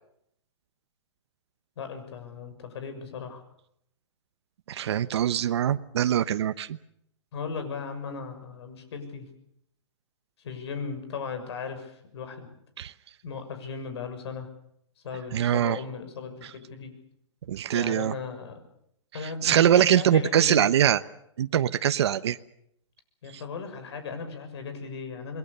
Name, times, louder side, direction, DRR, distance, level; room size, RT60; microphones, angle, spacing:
voice 1, 1.8-3.4 7.3-9.2 10.4-12.5 13.2-14.5 15.0-16.9 17.7-18.6 19.1-20.7 23.2-25.4, left 5 dB, 60° left, 8 dB, 6.6 m, -37 dB
voice 2, 4.7-6.8 12.8-12.9 15.3-15.8 17.5-18.1 19.4-21.0 21.4-22.4, right 10 dB, 60° right, 11 dB, 1.0 m, -23 dB
28.0 x 21.5 x 6.9 m, 0.75 s
hypercardioid pair, 165°, 16 cm